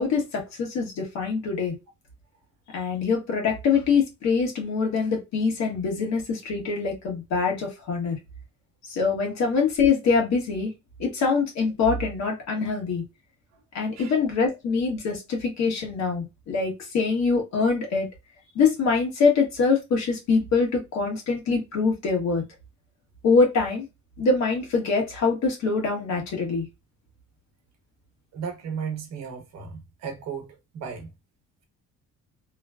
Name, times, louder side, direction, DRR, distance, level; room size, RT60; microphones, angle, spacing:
voice 1, 0.0-1.8 2.7-8.2 8.9-10.7 11.0-13.0 13.7-18.1 18.5-22.4 23.2-23.9 24.2-26.7, left 4 dB, 65° left, 1.3 m, -24 dB
voice 2, 13.9-14.3 28.3-31.1, right 6 dB, 60° right, 0.9 m, -35 dB
3.1 x 2.2 x 2.2 m
cardioid pair, 175°, 30 cm